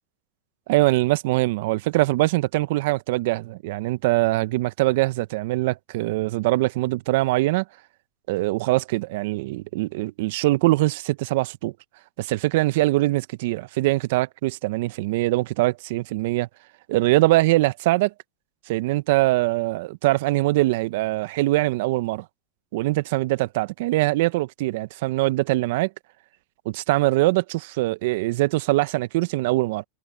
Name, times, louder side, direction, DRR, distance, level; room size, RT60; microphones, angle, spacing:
voice 1, 0.7-7.6 8.3-11.7 12.2-16.5 16.9-18.1 18.7-22.2 22.7-25.9 26.6-29.8, right 19 dB, 65° right, 1.1 m, -22 dB
hypercardioid pair, 100°, 0 cm